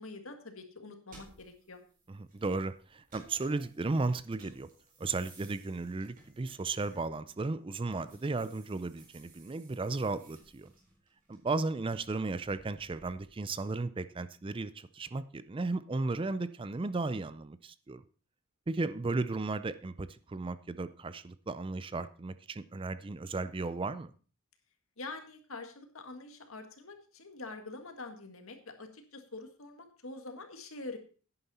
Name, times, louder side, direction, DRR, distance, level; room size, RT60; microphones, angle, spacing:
voice 1, 0.0-1.8 25.0-31.0, left 3 dB, 70° left, 1.9 m, -45 dB
sound 1, 1.1-7.5 7.9-13.3, right 2 dB, 40° right, 4.3 m, -60 dB
voice 2, 2.1-4.7 5.0-10.7 11.3-18.0 18.7-24.1, right 3 dB, 25° right, 0.4 m, -35 dB
11.0 x 9.7 x 4.2 m
head